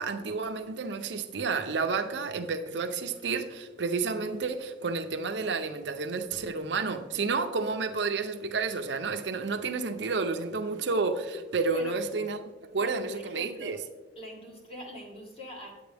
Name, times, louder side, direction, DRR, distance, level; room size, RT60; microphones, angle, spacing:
voice 1, 0.0-12.4 12.7-13.8, right 4 dB, 70° right, 7 dB, 0.6 m, -30 dB
voice 2, 12.8-13.8 14.2-15.8, equal, 30° left, -1 dB, 1.7 m, -43 dB
9.2 x 8.4 x 3.4 m, 1.3 s
head